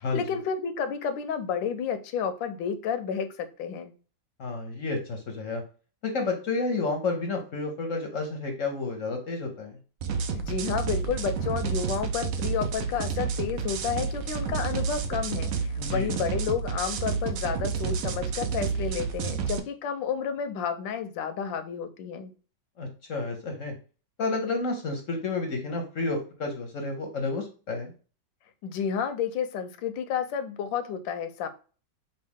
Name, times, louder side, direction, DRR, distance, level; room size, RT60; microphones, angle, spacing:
voice 1, 0.0-3.9 10.3-22.3 28.6-31.5, left 7 dB, 80° left, 8 dB, 1.4 m, -31 dB
voice 2, 4.4-5.6 6.0-9.8 15.8-16.1 22.8-23.7 24.2-27.9, left 3 dB, 55° left, 3 dB, 1.0 m, -30 dB
sound 1, 10.0-19.6, right 6 dB, 70° right, 0.8 m, -30 dB
5.5 x 2.3 x 3.5 m, 0.36 s
omnidirectional pair, 2.0 m